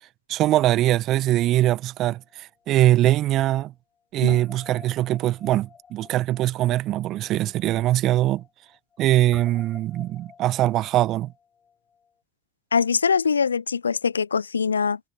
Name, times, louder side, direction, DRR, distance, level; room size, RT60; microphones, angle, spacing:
voice 1, 0.3-3.7 4.1-8.4 9.0-11.3, right 14 dB, 55° right, 1.1 m, -22 dB
Guitar, 0.6-3.0 3.3-3.4 4.3-12.1, left 6 dB, 35° left, 6.9 m, -51 dB
voice 2, 12.7-15.0, left 6 dB, 85° left, 0.4 m, -23 dB
figure-of-eight pair, 60°, 0 cm